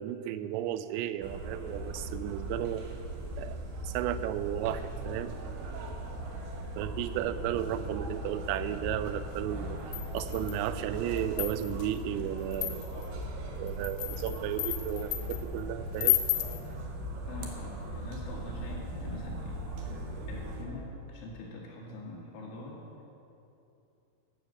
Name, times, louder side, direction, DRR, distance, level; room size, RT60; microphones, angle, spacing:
voice 1, 0.0-2.9 3.4-3.6 3.8-5.4 6.8-9.8 10.1-13.0 13.6-16.2, right 12 dB, 90° right, 13 dB, 3.3 m, -34 dB
sound 1, 1.2-20.6, right 1 dB, 70° right, 2.6 m, -39 dB
sound 2, 3.7-4.1 4.8-20.8, equal, 25° right, 2.8 m, -50 dB
sound 3, 9.9-10.7 11.2-11.9 12.5-13.1 13.7-15.4 16.0-16.6, left 15 dB, 90° left, 3.6 m, -31 dB
voice 2, 17.3-19.7 20.3-22.8, left 2 dB, 70° left, -3 dB, 4.2 m, -44 dB
15.0 x 7.6 x 6.4 m, 2.7 s
omnidirectional pair, 5.9 m